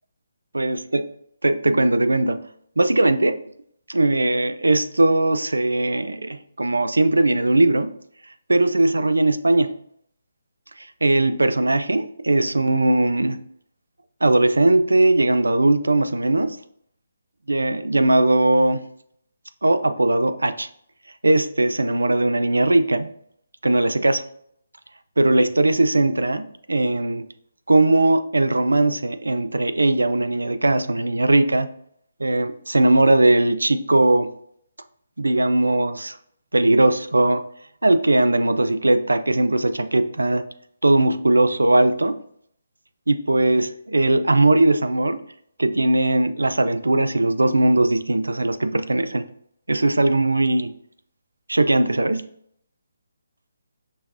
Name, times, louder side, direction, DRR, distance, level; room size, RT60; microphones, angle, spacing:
voice 1, 0.5-1.0 1.4-2.4 2.8-3.4 3.9-7.9 8.5-9.7 10.8-13.4 14.2-16.6 17.5-18.8 19.6-20.7 21.2-23.1 23.6-24.2 25.2-27.3 27.7-31.7 32.2-34.3 35.2-36.2 36.5-37.4 37.8-40.4 40.8-42.2 43.1-45.2 45.6-49.3 49.7-50.7 51.5-52.3, right 2 dB, 90° right, 11 dB, 0.3 m, -19 dB
5.5 x 3.0 x 2.5 m, 0.67 s
figure-of-eight pair, 145°, 0 cm